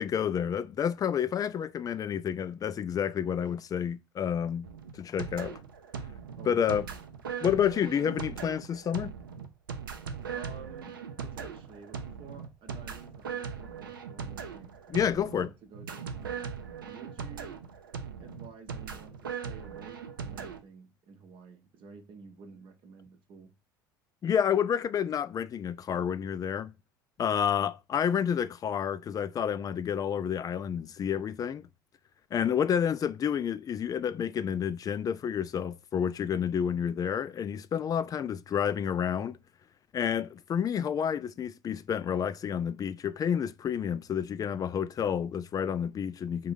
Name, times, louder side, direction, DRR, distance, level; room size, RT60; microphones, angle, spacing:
voice 1, 0.0-4.7 5.0-5.6 6.5-6.9 7.4-9.1 14.9-15.5 24.2-26.7 27.2-31.7 32.3-39.4 39.9-46.5, left 8 dB, 35° left, 0.4 m, -29 dB
sound 1, 4.6-20.6, right 6 dB, 90° right, 0.5 m, -39 dB
voice 2, 6.4-7.0 10.3-14.8 15.3-16.5 16.8-17.7 18.2-23.5, right 4 dB, 50° right, 0.7 m, -51 dB
3.6 x 2.7 x 3.5 m
hypercardioid pair, 70°, 11 cm